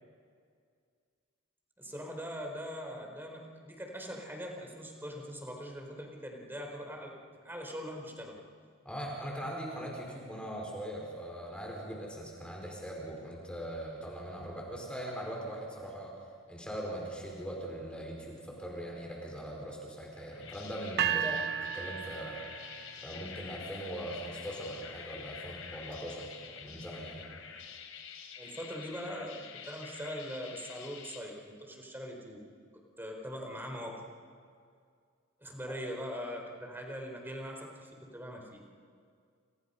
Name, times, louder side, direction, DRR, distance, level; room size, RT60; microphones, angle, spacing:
voice 1, 1.8-7.1 7.4-8.4 21.1-21.4 28.4-32.4 33.0-34.1 35.4-38.6, equal, 10° right, 1 dB, 4.2 m, -41 dB
voice 2, 8.8-16.1 16.5-21.3 21.7-22.4 23.0-27.2 35.7-35.8, right 1 dB, 5° left, -2 dB, 4.9 m, -41 dB
sound 1, 20.1-31.2, left 7 dB, 75° left, 3.5 m, -47 dB
sound 2, 21.0-23.1, right 9 dB, 50° right, 0.9 m, -33 dB
29.5 x 29.5 x 5.7 m, 2.2 s
head